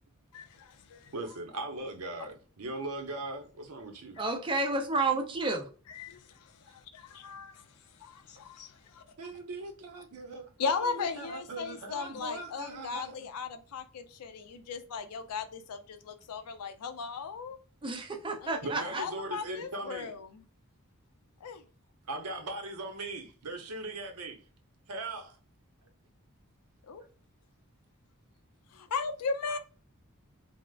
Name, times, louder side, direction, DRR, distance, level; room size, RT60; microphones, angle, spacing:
voice 1, 0.3-1.1 5.9-9.0 10.6-17.6 18.4-20.3 21.4-21.6 26.9-27.0 28.7-29.6, left 5 dB, 90° left, 0.5 m, -37 dB
voice 2, 1.1-4.2 9.2-13.1 18.6-20.1 22.1-24.4 24.9-25.4 27.0-27.1, right 2 dB, 85° right, 0.7 m, -39 dB
voice 3, 4.2-5.6 17.8-19.0, right 3 dB, 20° right, 0.5 m, -30 dB
3.3 x 2.0 x 2.3 m
head